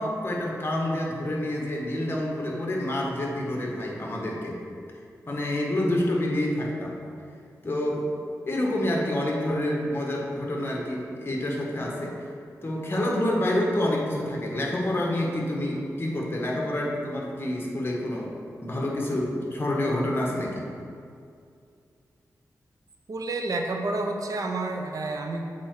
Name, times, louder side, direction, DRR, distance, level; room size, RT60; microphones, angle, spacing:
voice 1, 0.0-4.6 5.3-7.0 7.6-8.1 8.5-12.3 12.6-18.3 18.6-20.7, left 1 dB, 35° left, -2 dB, 1.4 m, -28 dB
voice 2, 23.1-25.6, right 2 dB, 60° right, 3 dB, 0.7 m, -30 dB
7.2 x 4.6 x 4.7 m, 2.4 s
wide cardioid pair, 80°, 7 cm